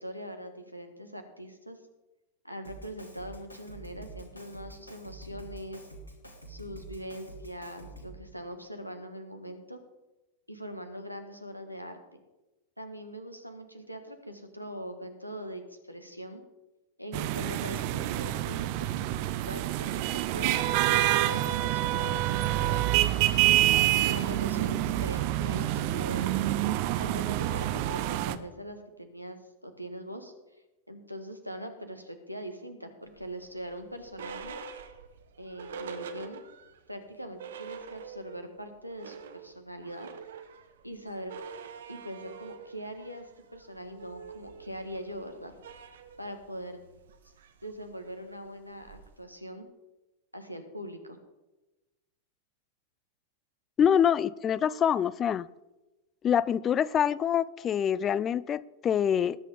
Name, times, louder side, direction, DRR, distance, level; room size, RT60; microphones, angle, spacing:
voice 1, 0.0-1.8 2.4-5.8 6.5-9.8 10.5-12.0 12.8-16.4 17.0-19.1 19.4-23.0 24.0-26.5 27.0-30.3 30.9-34.6 35.4-36.4 36.9-40.1 40.8-41.3 41.9-45.5 46.2-46.8 47.6-49.7 50.3-51.2, equal, 90° right, 6 dB, 1.5 m, -42 dB
Drum kit, 2.6-8.3, right 2 dB, 80° left, 2.5 m, -47 dB
sound 1, 17.1-28.4, right 14 dB, 45° right, 0.7 m, -27 dB
sound 2, 33.2-36.8 37.1-37.2 37.4-38.5 38.8-49.2, right 6 dB, 60° right, 1.0 m, -46 dB
voice 2, 53.8-55.5 56.2-59.4, left 8 dB, 25° left, 20 dB, 0.3 m, -25 dB
19.5 x 8.3 x 3.6 m, 1.0 s
figure-of-eight pair, 90°, 0 cm